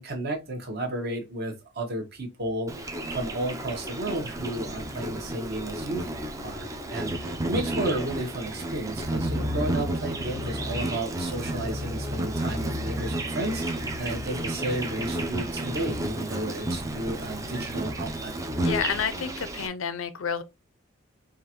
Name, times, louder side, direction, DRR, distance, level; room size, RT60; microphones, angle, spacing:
voice 1, 0.0-2.7 3.1-6.1 6.4-18.3, right 1 dB, 50° right, 1.2 m, -33 dB
Insect, 2.7-19.7, right 1 dB, 15° right, 0.5 m, -31 dB
voice 2, 18.6-20.4, left 7 dB, 80° left, 0.5 m, -30 dB
4.9 x 2.5 x 2.9 m
head